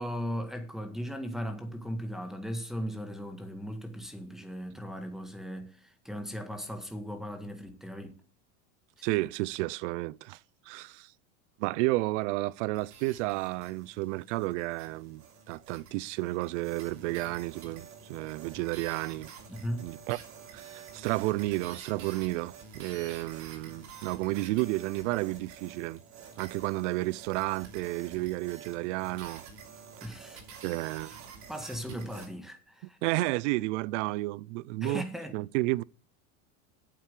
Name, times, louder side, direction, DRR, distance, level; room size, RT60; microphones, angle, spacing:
voice 1, 0.0-8.2 9.0-9.1 19.5-19.8 30.0-30.4 31.5-33.0 34.8-35.4, equal, ahead, 1.7 m, -37 dB
voice 2, 9.0-10.4 10.7-11.1 11.6-15.2 15.5-19.3 19.8-20.2 20.5-26.0 26.4-29.4 30.6-31.2 33.0-35.0 35.3-35.8, right 20 dB, 75° right, 0.5 m, -31 dB
sound 1, 12.7-32.3, right 6 dB, 50° right, 3.0 m, -49 dB
8.9 x 7.6 x 6.6 m
supercardioid pair, 125°, 36 cm